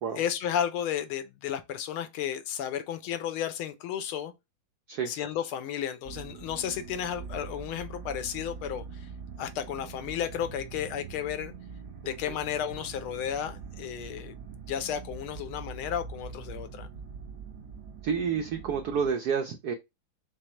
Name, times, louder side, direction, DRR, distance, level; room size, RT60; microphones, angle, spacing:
voice 1, 0.2-4.3 5.1-9.1 9.4-11.5 12.0-14.3 14.7-16.9, left 9 dB, 80° left, 1.5 m, -33 dB
sound 1, 6.0-19.1, right 5 dB, 45° right, 1.4 m, -43 dB
voice 2, 12.0-12.4 18.0-19.7, right 6 dB, 85° right, 0.8 m, -30 dB
5.1 x 2.0 x 4.3 m
omnidirectional pair, 2.3 m